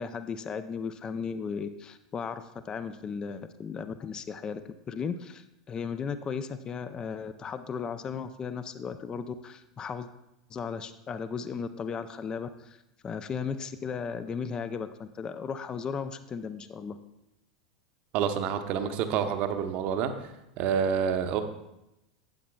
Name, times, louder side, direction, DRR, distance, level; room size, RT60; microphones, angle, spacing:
voice 1, 0.0-10.1 10.5-12.8 13.0-17.0, left 6 dB, 25° left, 11 dB, 0.5 m, -36 dB
voice 2, 18.1-20.1 20.6-21.4, right 7 dB, 45° right, 8 dB, 0.8 m, -28 dB
12.0 x 9.1 x 2.3 m, 0.90 s
figure-of-eight pair, 85°, 3 cm